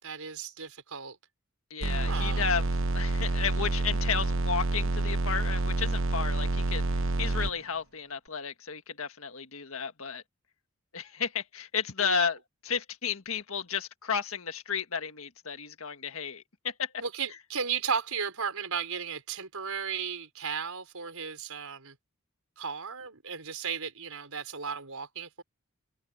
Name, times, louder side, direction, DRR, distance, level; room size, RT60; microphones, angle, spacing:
voice 1, 0.0-1.2 1.9-2.5 12.0-12.3 17.0-22.0 22.6-25.4, right 6 dB, 90° right, 4.6 m, -35 dB
voice 2, 1.7-10.2 10.9-12.4 12.6-17.0, left 6 dB, 70° left, 1.7 m, -33 dB
sound 1, 1.8-7.5, right 2 dB, 65° right, 1.0 m, -28 dB
head